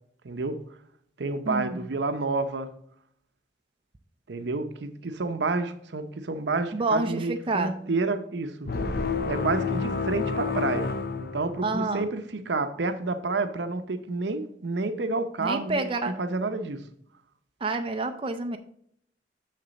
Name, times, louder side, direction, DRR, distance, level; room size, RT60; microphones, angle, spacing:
voice 1, 0.2-0.6 1.2-2.7 4.3-8.7 9.3-10.9 11.2-16.8, right 3 dB, 70° right, 0.7 m, -29 dB
voice 2, 1.5-1.9 6.7-7.7 11.6-12.1 15.4-16.1 17.6-18.6, right 3 dB, 30° right, 0.5 m, -28 dB
sound 1, 8.7-12.0, left 4 dB, 60° left, 0.6 m, -29 dB
6.7 x 6.6 x 4.0 m
head